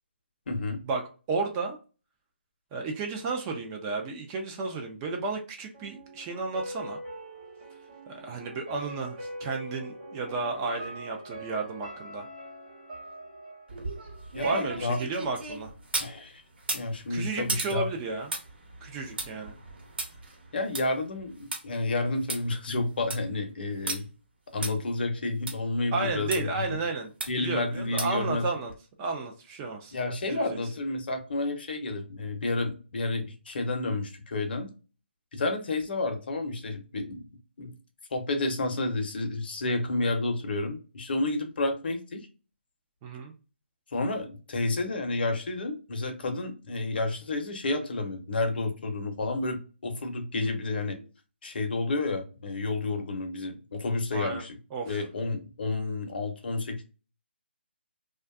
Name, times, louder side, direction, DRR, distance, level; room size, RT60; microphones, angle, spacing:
voice 1, 0.5-0.8 14.3-15.0 16.0-16.4 16.7-17.9 20.5-24.1 24.5-26.5 27.3-28.5 29.9-34.7 35.3-37.2 37.6-37.7 38.1-42.3 43.9-51.0 51.4-54.6 54.8-56.8, left 2 dB, 55° left, 6 dB, 0.7 m, -30 dB
voice 2, 1.3-1.8 2.7-7.0 8.1-12.3 14.4-15.7 17.1-18.3 18.8-19.5 25.9-27.1 27.4-28.7 29.0-29.9 30.3-30.6 43.0-43.3 51.0-51.1 54.1-54.4 54.7-55.0, right 3 dB, 20° right, 2 dB, 0.3 m, -32 dB
sound 1, 5.7-14.7 15.0-15.1, right 1 dB, 35° right, 1.1 m, -43 dB
sound 2, 13.7-16.2 16.6-21.6 22.0-22.1 22.3-22.4 22.8-23.3 23.9-24.0 24.6-24.7 25.5-25.6 26.3-26.4 27.2-27.5 28.0-28.3 28.7-28.8, right 2 dB, 60° right, 0.9 m, -35 dB
2.5 x 2.2 x 2.3 m, 0.34 s
hypercardioid pair, 155°, 6 cm